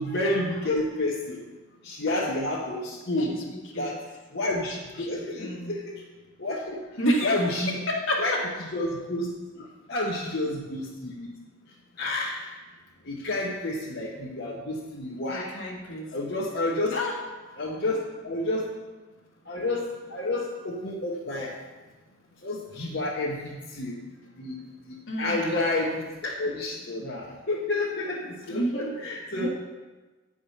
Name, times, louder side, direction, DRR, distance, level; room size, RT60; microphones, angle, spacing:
voice 1, 0.0-1.4 1.8-3.3 3.8-4.0 4.3-5.8 6.4-6.8 7.2-7.8 8.2-8.3 8.7-9.3 9.6-11.3 12.0-12.5 13.0-15.5 16.1-17.0 17.6-18.6 19.5-21.5 22.4-24.0 24.4-24.6 24.9-29.5, left 2 dB, 55° left, -5 dB, 1.2 m, -30 dB
voice 2, 3.2-3.9 5.0-5.8 7.0-8.4 15.3-16.1 16.4-16.5 16.9-17.2 25.1-25.6 28.5-28.9 29.3-29.5, equal, 70° left, -1 dB, 1.6 m, -30 dB
9.5 x 4.9 x 5.6 m, 1.2 s
head